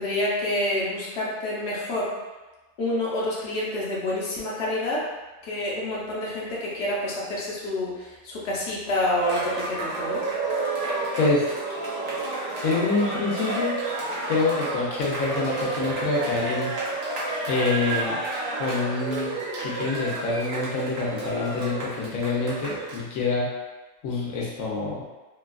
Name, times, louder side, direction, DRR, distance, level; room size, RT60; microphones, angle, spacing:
voice 1, 0.0-2.1 2.8-5.1 5.4-10.2, left 1 dB, 60° left, -5 dB, 0.9 m, -28 dB
Cheering, 9.2-23.0, right 3 dB, 80° right, 1.1 m, -30 dB
voice 2, 11.2-11.5 12.6-13.8 14.3-16.7 17.5-18.2 18.6-19.4 19.6-23.5 24.0-25.0, left 3 dB, 85° left, -4 dB, 1.1 m, -26 dB
2.9 x 2.3 x 2.3 m, 1.2 s
omnidirectional pair, 1.4 m